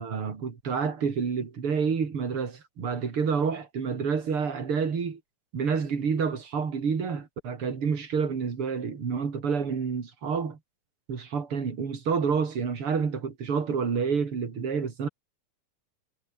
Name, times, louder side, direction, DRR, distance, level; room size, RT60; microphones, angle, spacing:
voice 1, 0.0-5.2 5.5-10.6 11.1-15.1, right 6 dB, 45° right, 3.6 m, -28 dB
omnidirectional pair, 3.6 m